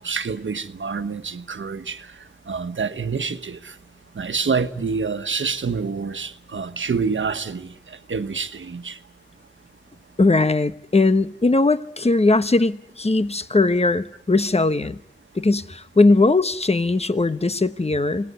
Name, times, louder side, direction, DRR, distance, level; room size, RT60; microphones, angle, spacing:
voice 1, 0.0-2.1 2.5-3.7 4.1-9.0, right 5 dB, 90° right, 1.3 m, -27 dB
voice 2, 10.2-15.0 15.3-18.3, left 3 dB, 35° left, 1.2 m, -19 dB
27.0 x 19.0 x 9.4 m
wide cardioid pair, 60°, 19 cm